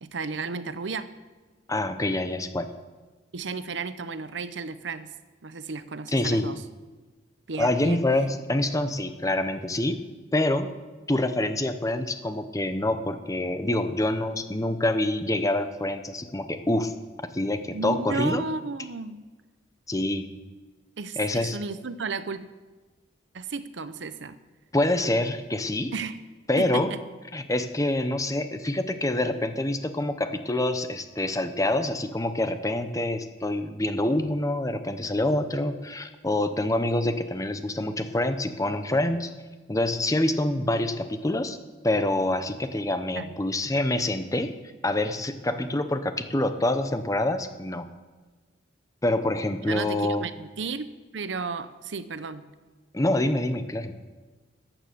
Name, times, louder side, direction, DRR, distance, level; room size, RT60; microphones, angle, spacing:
voice 1, 0.0-1.1 3.3-5.1 5.4-6.6 7.5-8.0 17.7-19.2 21.0-22.5 23.3-24.4 25.9-26.2 26.6-27.0 43.2-43.3 49.7-52.5, right 4 dB, 70° right, 13 dB, 0.7 m, -33 dB
voice 2, 1.7-2.7 6.1-6.5 7.6-10.0 10.3-10.8 11.1-16.9 17.3-18.4 19.9-20.3 21.2-21.6 24.7-25.9 26.5-26.9 27.3-39.3 39.7-41.6 41.8-44.5 44.8-47.9 49.0-50.2 52.9-53.9, left 1 dB, 15° left, 9 dB, 0.8 m, -26 dB
14.0 x 9.0 x 6.9 m, 1.3 s
head